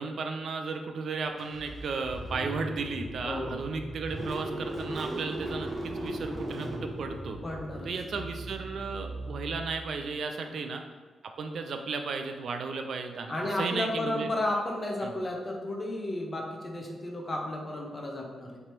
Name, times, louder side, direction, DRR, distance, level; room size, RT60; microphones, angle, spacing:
voice 1, 0.0-7.4 7.8-10.8 11.2-14.3 15.0-15.1, right 4 dB, 65° right, 5 dB, 0.3 m, -34 dB
Car / Engine starting, 1.4-10.1, right 1 dB, 25° right, 0.8 m, -38 dB
voice 2, 3.2-3.6 7.4-7.9 10.4-10.7 13.3-18.6, left 1 dB, 25° left, 0 dB, 0.7 m, -33 dB
3.3 x 2.9 x 4.4 m, 1.4 s
wide cardioid pair, 130°, 0 cm